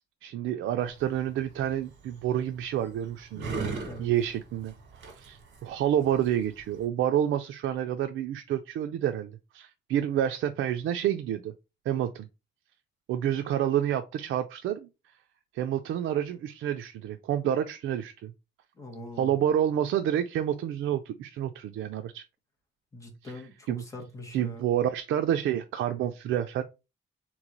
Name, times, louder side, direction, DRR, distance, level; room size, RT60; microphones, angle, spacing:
voice 1, 0.2-11.5 11.9-12.3 13.1-14.9 15.5-18.3 19.2-22.2 23.2-23.4 23.7-23.8 24.3-26.6, right 10 dB, 85° right, 0.4 m, -29 dB
sound 1, 0.8-6.9, right 4 dB, 65° right, 1.6 m, -40 dB
voice 2, 18.7-19.3 22.9-24.7, left 1 dB, 15° left, 1.2 m, -43 dB
3.6 x 3.1 x 3.8 m
wide cardioid pair, 160°, 20 cm